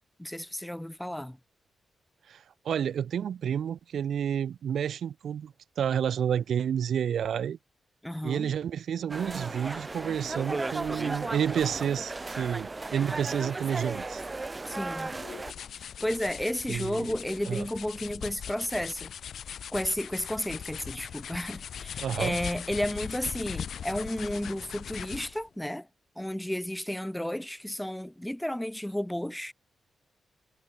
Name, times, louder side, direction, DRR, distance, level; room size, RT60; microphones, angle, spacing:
voice 1, 0.2-1.4 8.0-8.5 14.6-15.1 15.7-19.1 19.7-25.9 26.2-29.5, left 1 dB, 5° left, 1.9 m, -32 dB
voice 2, 2.3-7.6 8.2-14.2 16.7-17.1 17.5-17.6 22.0-22.4, right 8 dB, 75° right, 1.6 m, -30 dB
sound 1, 9.1-15.5, right 3 dB, 25° right, 1.1 m, -35 dB
sound 2, 15.1-25.5, left 8 dB, 75° left, 1.0 m, -40 dB
cardioid pair, 110°, 0 cm